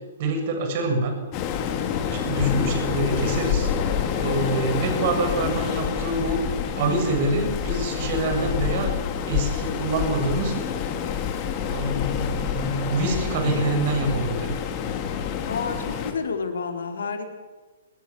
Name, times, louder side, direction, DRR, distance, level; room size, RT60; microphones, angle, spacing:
voice 1, 0.2-1.2 2.1-3.9 4.2-6.4 6.7-8.9 9.3-10.7 11.7-14.6, right 2 dB, 45° right, 5 dB, 7.0 m, -26 dB
Waves surf, 1.3-16.1, left 8 dB, 35° left, 3.8 m, -27 dB
voice 2, 15.5-17.3, left 5 dB, 70° left, 5 dB, 4.3 m, -30 dB
26.0 x 20.5 x 7.2 m, 1.3 s
hypercardioid pair, 125°, 0 cm